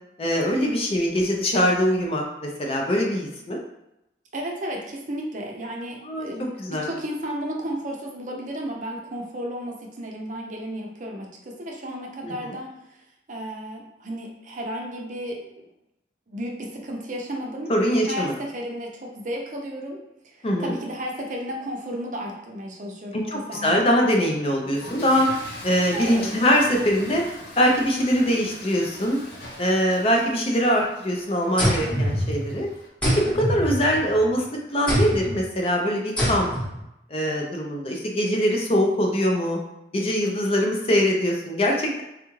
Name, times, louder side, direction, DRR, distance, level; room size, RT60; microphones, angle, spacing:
voice 1, 0.2-3.6 6.0-6.3 6.6-6.9 12.2-12.5 17.7-18.3 20.4-20.7 23.1-25.3 25.6-27.2 27.6-29.2 29.6-32.7 33.2-36.5 37.1-39.6 39.9-42.0, equal, 30° left, 0 dB, 0.4 m, -22 dB
voice 2, 4.3-13.0 13.3-15.4 16.3-17.7 18.0-20.0 20.2-24.0 25.9-26.3, equal, 45° right, 0 dB, 0.5 m, -33 dB
Toilet flush / Fill (with liquid), 24.6-32.9, left 1 dB, 60° left, 0.7 m, -41 dB
sound 1, 31.6-32.6 33.0-34.3 34.9-35.4 36.2-36.8, equal, 5° left, 0.9 m, -25 dB
3.5 x 2.3 x 3.0 m, 0.86 s
head